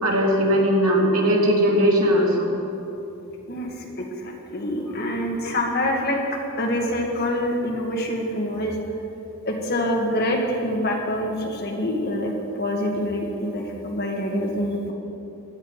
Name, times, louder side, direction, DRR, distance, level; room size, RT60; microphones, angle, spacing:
voice 1, 0.0-2.5, equal, 90° right, -1 dB, 2.5 m, -19 dB
voice 2, 3.5-6.2 6.6-8.7 9.5-12.3 12.6-14.9, left 1 dB, 50° left, 0 dB, 2.0 m, -26 dB
16.5 x 11.0 x 4.9 m, 2.8 s
head